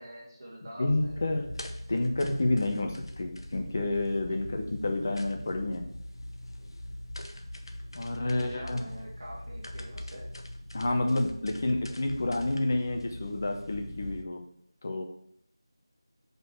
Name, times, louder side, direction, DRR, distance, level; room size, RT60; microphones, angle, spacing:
voice 1, 0.0-1.2 8.2-10.3, right 1 dB, 35° right, -4 dB, 2.5 m, -45 dB
voice 2, 0.8-1.5 1.9-5.8 7.9-8.8 10.7-14.4 14.8-15.0, left 2 dB, 30° left, 4 dB, 0.8 m, -29 dB
sound 1, 0.9-14.2, left 1 dB, 65° left, 0.9 m, -42 dB
6.2 x 5.4 x 4.5 m, 0.66 s
figure-of-eight pair, 175°, 3 cm